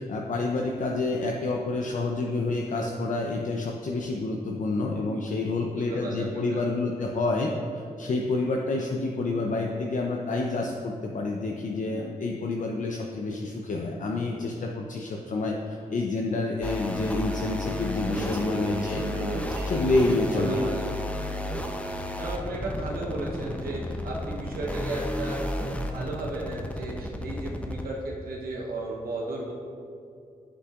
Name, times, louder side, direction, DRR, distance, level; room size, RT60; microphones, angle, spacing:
voice 1, 0.0-19.0 19.7-20.6, left 2 dB, 55° left, 0 dB, 0.6 m, -28 dB
voice 2, 5.7-6.8 18.2-19.7 20.3-21.1 22.2-29.5, right 2 dB, 80° right, -2 dB, 1.0 m, -34 dB
sound 1, 16.6-27.9, left 1 dB, 10° left, 0.7 m, -33 dB
9.9 x 5.6 x 2.5 m, 2.5 s
cardioid pair, 60°, 15 cm